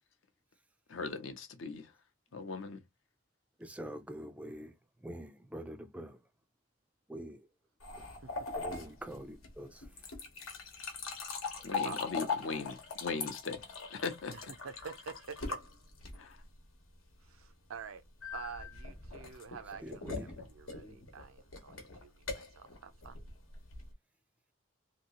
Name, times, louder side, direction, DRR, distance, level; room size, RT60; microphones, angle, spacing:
voice 1, 0.9-1.9 2.3-2.8 11.6-13.6 13.9-14.5 16.2-16.4, left 4 dB, 65° left, 0.7 m, -39 dB
voice 2, 3.6-4.7 5.0-6.2 7.1-7.5 8.0-8.1 8.5-10.1 19.8-20.3, right 1 dB, 5° right, 0.3 m, -45 dB
sound 1, 7.8-16.4 18.2-23.9, left 4 dB, 85° left, 1.1 m, -41 dB
voice 3, 7.9-8.5 11.8-12.0 14.3-15.6 17.2-18.0 18.3-23.2, right 6 dB, 80° right, 0.5 m, -48 dB
2.9 x 2.7 x 2.9 m
head